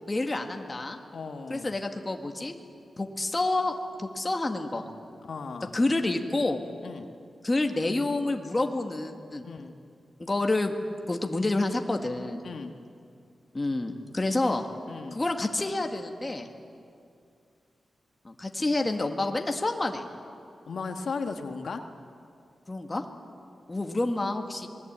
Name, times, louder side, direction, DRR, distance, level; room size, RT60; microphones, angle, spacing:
voice 1, 0.0-1.0 1.5-2.6 3.0-4.8 5.7-6.6 7.4-9.5 10.2-10.8 11.1-12.5 13.5-14.7 15.1-16.5 18.2-20.0 22.7-23.0 23.7-24.7, left 2 dB, 25° left, 4 dB, 1.9 m, -28 dB
voice 2, 1.1-1.7 5.3-5.8 6.8-7.1 9.4-9.7 12.4-12.7 14.9-15.2 20.6-21.8, left 4 dB, 70° left, 5 dB, 1.6 m, -36 dB
27.0 x 20.5 x 8.8 m, 2.4 s
wide cardioid pair, 105°, 0 cm